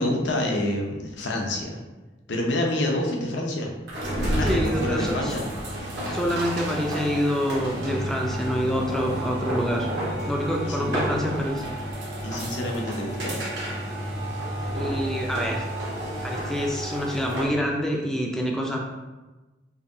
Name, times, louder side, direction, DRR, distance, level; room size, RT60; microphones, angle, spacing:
voice 1, 0.0-1.8 2.3-3.7 4.2-5.5 10.6-10.9 12.2-13.4, left 1 dB, 75° left, 0 dB, 0.7 m, -27 dB
sound 1, 3.9-17.6, right 1 dB, 70° right, 1.1 m, -30 dB
voice 2, 4.4-5.3 6.1-9.9 10.3-11.6 14.7-15.7 16.2-18.8, equal, ahead, -1 dB, 0.4 m, -27 dB
4.7 x 2.7 x 2.6 m, 1.2 s
head